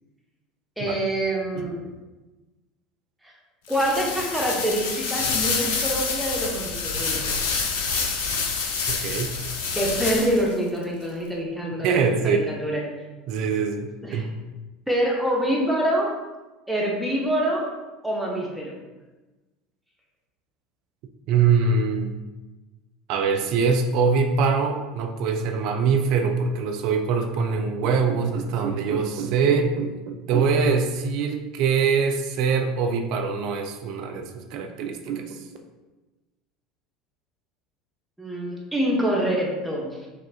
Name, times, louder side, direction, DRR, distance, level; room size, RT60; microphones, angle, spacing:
voice 1, 0.8-1.8 3.7-7.4 9.7-12.8 14.0-14.2 14.9-16.1 16.7-17.7 18.0-18.7 38.2-40.1, right 1 dB, 5° right, -2 dB, 1.0 m, -26 dB
sound 1, 3.7-10.5, left 5 dB, 65° left, 0.5 m, -27 dB
voice 2, 8.9-9.3 11.8-12.5 13.3-14.3 21.3-22.1 23.1-35.5, right 5 dB, 55° right, 4 dB, 0.5 m, -23 dB
6.4 x 2.4 x 2.4 m, 1.1 s
figure-of-eight pair, 70°, 0 cm